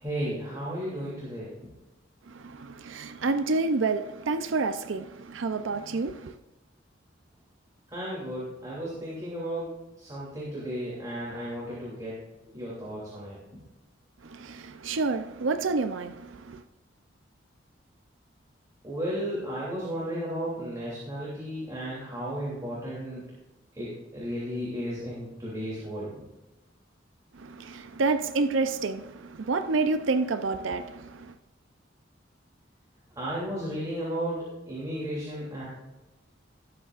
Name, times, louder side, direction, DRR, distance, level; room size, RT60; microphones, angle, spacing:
voice 1, 0.0-1.5 7.9-12.2 12.5-13.4 18.8-23.2 23.7-26.1 33.1-35.7, equal, 20° right, 2.9 m, -34 dB
voice 2, 2.3-6.3 14.2-16.6 27.3-31.3, right 3 dB, 85° right, 0.6 m, -29 dB
19.0 x 8.2 x 2.5 m
head